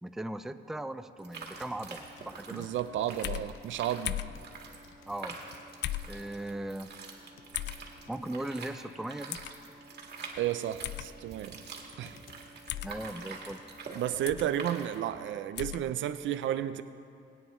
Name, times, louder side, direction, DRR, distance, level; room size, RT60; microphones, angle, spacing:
voice 1, 0.0-2.7 5.1-5.4 6.0-6.9 8.1-9.4 12.8-13.6, right 1 dB, ahead, 10 dB, 0.5 m, -38 dB
sound 1, 1.2-15.2, right 4 dB, 55° right, 2.0 m, -46 dB
sound 2, 1.6-5.7 6.0-6.4 7.2-8.2 10.6-10.9 11.3-14.5 15.0-15.1, left 6 dB, 80° left, 0.9 m, -59 dB
voice 2, 2.5-4.2 10.4-11.6 12.0-12.2 13.9-16.8, right 11 dB, 75° right, 12 dB, 0.6 m, -32 dB
sound 3, 3.2-3.5 4.1-4.4 5.8-6.1 7.5-7.8 9.3-9.5 10.8-11.1 12.7-12.9 14.3-14.5 15.6-15.8, left 13 dB, 60° left, 0.4 m, -35 dB
21.0 x 9.3 x 3.1 m, 2.5 s
cardioid pair, 90°, 20 cm